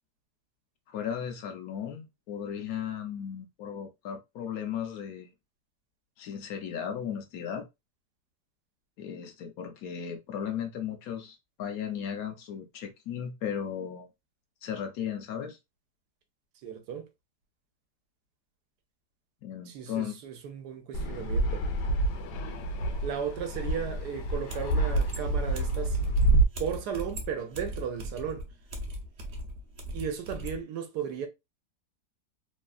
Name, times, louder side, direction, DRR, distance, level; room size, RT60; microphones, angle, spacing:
voice 1, 0.9-5.3 6.2-7.7 9.0-14.1 14.6-15.6 19.4-20.2, left 8 dB, 70° left, 0.9 m, -36 dB
voice 2, 16.6-17.1 19.7-21.7 23.0-26.0 26.6-28.5 29.9-31.3, right 7 dB, 80° right, 1.2 m, -35 dB
Fixed-wing aircraft airplane, 20.9-26.4, right 2 dB, 85° left, 1.2 m, -27 dB
sound 1, 24.5-30.6, equal, 55° right, 0.8 m, -39 dB
3.1 x 2.3 x 2.3 m
omnidirectional pair, 1.7 m